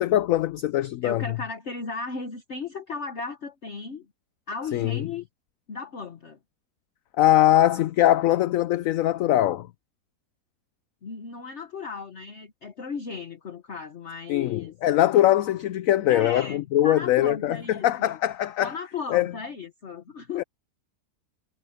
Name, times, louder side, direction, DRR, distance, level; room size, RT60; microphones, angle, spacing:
voice 1, 0.0-1.2 4.7-5.0 7.2-9.7 14.3-18.7 19.1-19.3 20.4-20.5, left 13 dB, 70° left, 0.8 m, -22 dB
voice 2, 1.0-4.1 4.5-5.2 5.7-6.4 11.0-14.7 16.1-18.2 18.6-20.4, left 4 dB, 45° left, 1.4 m, -35 dB
omnidirectional pair, 1.7 m